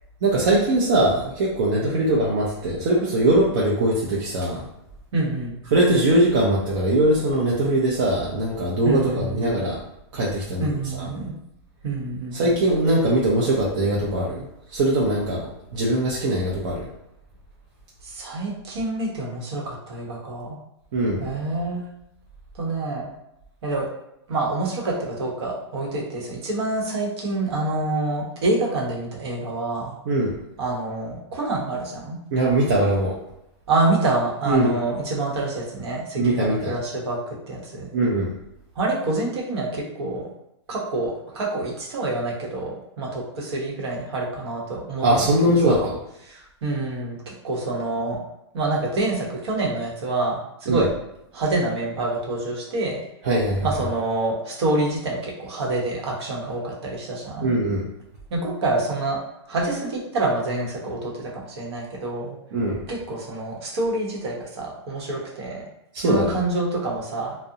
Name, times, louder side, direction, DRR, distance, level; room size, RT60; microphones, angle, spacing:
voice 1, 0.2-4.6 5.7-9.8 10.1-10.7 11.0-11.1 12.3-16.9 20.9-21.2 30.1-30.3 32.3-33.1 34.5-34.7 36.2-36.7 37.9-38.3 45.0-46.0 50.7-50.9 53.2-53.7 57.4-57.8 62.5-62.8 65.9-66.4, right 1 dB, 50° right, -5 dB, 0.5 m, -21 dB
voice 2, 5.1-5.5 8.8-9.4 10.6-11.3 11.8-12.4 18.0-20.6 21.2-21.9 22.6-23.1 23.6-23.9 24.3-29.9 30.6-32.2 33.7-37.9 38.8-40.3 40.7-45.3 45.7-45.9 46.3-48.2 48.5-50.9 51.3-53.0 53.6-57.5 58.3-59.2 59.5-62.3 62.9-65.6 66.0-67.4, right 2 dB, 65° right, -2 dB, 0.9 m, -27 dB
2.4 x 2.0 x 2.7 m, 0.83 s
hypercardioid pair, 155°, 15 cm